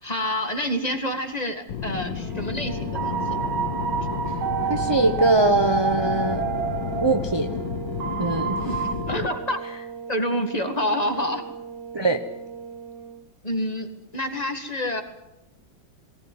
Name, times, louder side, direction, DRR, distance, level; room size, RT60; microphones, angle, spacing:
voice 1, 0.0-3.2 8.7-8.8 9.1-9.6 10.1-11.4 13.4-15.0, left 1 dB, 20° left, 7 dB, 1.9 m, -27 dB
sound 1, 1.7-9.3, left 7 dB, 65° left, 1.9 m, -31 dB
sound 2, 2.2-13.2, right 5 dB, 60° right, 2.3 m, -38 dB
sound 3, 2.7-9.0, right 6 dB, 90° right, 2.5 m, -29 dB
voice 2, 4.7-6.4 7.0-7.5 8.2-8.7 11.9-12.2, right 2 dB, 25° right, 6 dB, 0.6 m, -22 dB
19.5 x 18.5 x 9.6 m, 0.93 s
omnidirectional pair, 2.2 m